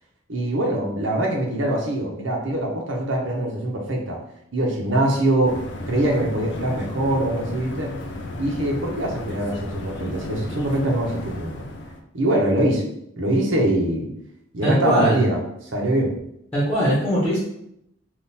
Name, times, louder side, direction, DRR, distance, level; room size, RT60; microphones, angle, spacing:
voice 1, 0.3-4.2 4.5-5.5 5.9-7.9 8.4-11.6 12.1-12.8 13.2-14.1 14.5-15.4 15.7-16.2, right 1 dB, 80° right, -1 dB, 1.0 m, -23 dB
sound 1, 5.4-12.0, left 1 dB, 65° left, 0.5 m, -34 dB
voice 2, 14.6-15.2 16.5-17.4, equal, 10° left, -7 dB, 1.1 m, -20 dB
3.8 x 2.5 x 4.1 m, 0.77 s
head